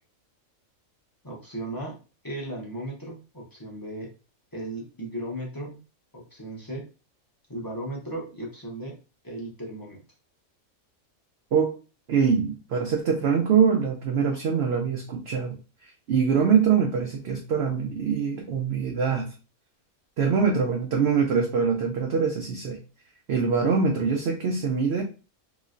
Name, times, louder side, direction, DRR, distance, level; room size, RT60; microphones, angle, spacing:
voice 1, 1.2-2.0 2.2-4.1 4.5-5.8 6.1-6.9 7.5-9.0 9.2-10.0, right 1 dB, 20° left, -2 dB, 0.6 m, -36 dB
voice 2, 12.1-19.3 20.2-22.8 23.3-25.0, right 6 dB, 65° right, 2 dB, 0.7 m, -24 dB
3.1 x 2.9 x 2.5 m, 0.33 s
omnidirectional pair, 1.5 m